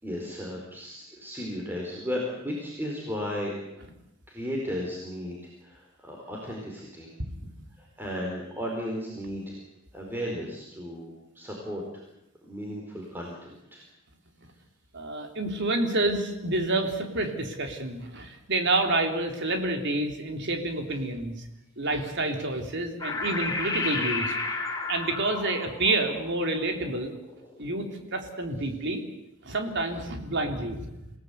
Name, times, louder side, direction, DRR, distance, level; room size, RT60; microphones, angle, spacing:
voice 1, 0.0-3.5 4.3-7.1 7.8-9.6 9.9-11.8 12.5-13.8, equal, 10° right, -2 dB, 4.7 m, -35 dB
voice 2, 14.9-21.5 21.8-24.4 24.9-27.1 27.6-27.9 28.1-29.0 29.4-31.1, right 2 dB, 60° right, 4 dB, 3.8 m, -28 dB
sound 1, 23.0-27.8, left 3 dB, 20° left, 3.8 m, -32 dB
28.0 x 17.5 x 8.4 m, 0.89 s
head